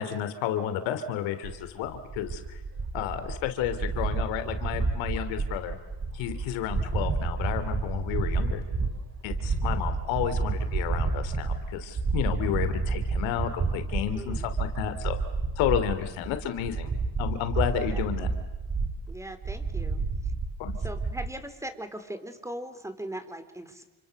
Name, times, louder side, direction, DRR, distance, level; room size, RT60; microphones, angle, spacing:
voice 1, 0.0-2.6 2.9-5.8 6.1-8.6 9.2-15.2 15.6-16.9 17.2-18.3 20.6-20.8, left 10 dB, 85° left, 9 dB, 3.5 m, -31 dB
sound 1, 1.4-21.3, right 4 dB, 35° right, 4.9 m, -30 dB
voice 2, 14.1-14.5 17.9-18.1 19.1-20.3 20.8-23.9, right 1 dB, 5° right, 10 dB, 4.1 m, -40 dB
30.0 x 26.5 x 6.8 m, 1.1 s
cardioid pair, 90°, 45 cm